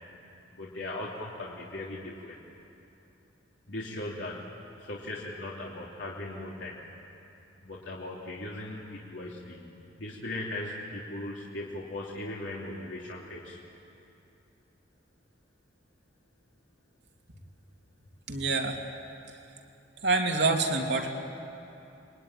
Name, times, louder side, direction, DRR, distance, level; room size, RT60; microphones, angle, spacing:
voice 1, 0.5-2.4 3.7-4.5 4.8-6.7 7.6-9.6 10.0-13.6, left 1 dB, 85° left, -4 dB, 3.0 m, -38 dB
voice 2, 18.3-18.8 20.0-21.1, right 3 dB, 75° right, 2 dB, 2.7 m, -26 dB
26.5 x 22.0 x 9.9 m, 2.8 s
head